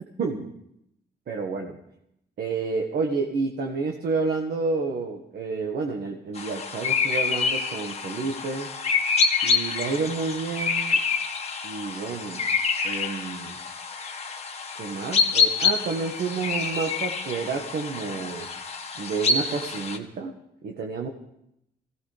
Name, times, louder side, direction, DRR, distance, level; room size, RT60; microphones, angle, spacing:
voice 1, 0.2-0.5 1.3-1.8 2.4-8.7 9.4-11.0 11.6-12.5 12.8-13.6 14.7-18.5 19.0-21.1, right 4 dB, 60° right, 2 dB, 1.6 m, -30 dB
sound 1, 6.4-20.0, left 5 dB, 35° left, 1.6 m, -27 dB
23.5 x 17.0 x 3.4 m, 0.78 s
cardioid pair, 130°, 18 cm